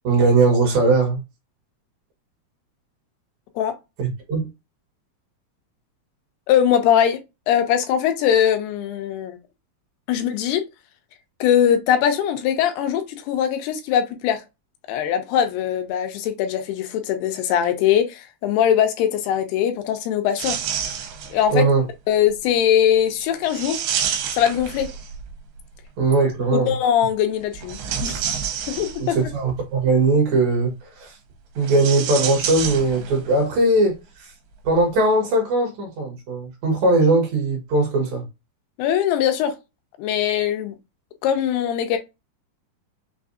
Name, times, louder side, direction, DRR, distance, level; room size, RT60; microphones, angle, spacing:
voice 1, 0.0-1.2 4.0-4.4 21.5-21.8 26.0-26.7 29.0-31.1 31.6-34.3 34.6-38.2, right 3 dB, 60° right, 2.2 m, -19 dB
voice 2, 6.5-7.2 7.5-9.4 10.1-10.6 11.4-14.4 14.9-20.6 21.3-21.7 22.1-23.8 24.3-24.9 26.5-28.4 28.7-29.2 38.8-39.5 40.0-40.8 41.2-42.0, left 9 dB, 90° left, 2.7 m, -21 dB
sound 1, 20.4-21.5 23.5-25.3 27.5-29.3 31.6-33.3 33.6-33.7 34.6-34.8, right 8 dB, 80° right, 2.6 m, -28 dB
6.1 x 2.4 x 2.6 m
omnidirectional pair, 4.7 m